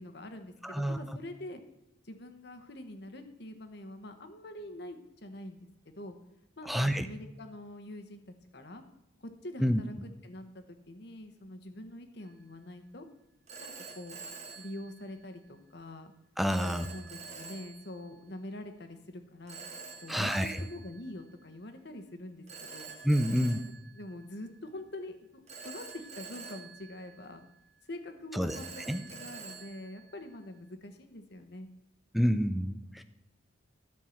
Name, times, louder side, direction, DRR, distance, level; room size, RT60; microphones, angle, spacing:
voice 1, 0.0-1.6 2.0-6.2 6.6-8.2 8.5-8.8 9.2-13.1 13.6-14.2 14.5-16.1 16.6-19.6 20.0-22.5 22.7-22.9 23.3-23.5 23.9-27.4 27.9-31.7, left 1 dB, 55° left, 7 dB, 1.1 m, -45 dB
voice 2, 0.6-1.0 6.7-7.1 9.6-9.8 16.4-16.9 20.1-20.6 23.0-23.6 28.3-28.6 28.9-29.0 32.1-33.0, equal, ahead, 10 dB, 0.5 m, -28 dB
Telephone, 12.2-12.5 13.5-15.5 16.5-18.2 19.5-21.7 22.5-24.8 25.5-27.8 28.5-30.7, right 4 dB, 35° right, 1.4 m, -47 dB
13.0 x 4.6 x 7.1 m, 0.85 s
head